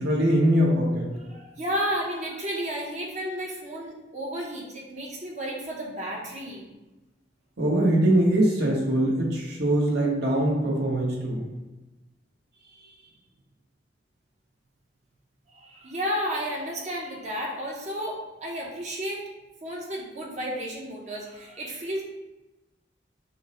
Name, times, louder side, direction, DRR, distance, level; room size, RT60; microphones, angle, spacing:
voice 1, 0.0-1.1 7.6-11.4, right 1 dB, 60° right, -3 dB, 1.0 m, -22 dB
voice 2, 1.2-6.7 15.5-19.2 19.6-22.0, equal, 40° right, -2 dB, 0.7 m, -32 dB
5.6 x 2.0 x 2.9 m, 1.1 s
head